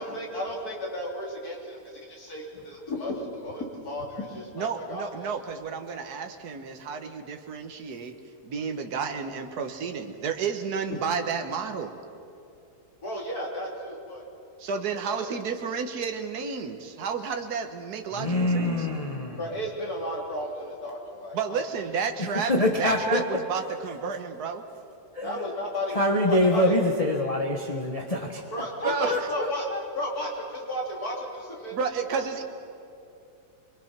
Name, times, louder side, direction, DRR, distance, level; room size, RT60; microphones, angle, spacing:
voice 1, 0.0-5.3 13.0-14.2 14.7-15.3 19.4-21.7 25.2-26.8 28.5-29.7 29.9-31.8 32.1-32.3, left 1 dB, 70° left, -1 dB, 3.7 m, -34 dB
voice 2, 4.6-8.2 8.4-12.0 14.6-18.9 21.3-22.5 22.8-24.6 28.8-29.2 31.7-32.4, right 6 dB, 75° right, 5 dB, 1.7 m, -31 dB
voice 3, 18.1-19.4 22.5-23.2 25.1-25.5 25.9-28.4 28.8-29.8, left 1 dB, 25° left, 0 dB, 1.3 m, -25 dB
25.0 x 23.0 x 6.0 m, 2.7 s
omnidirectional pair, 1.7 m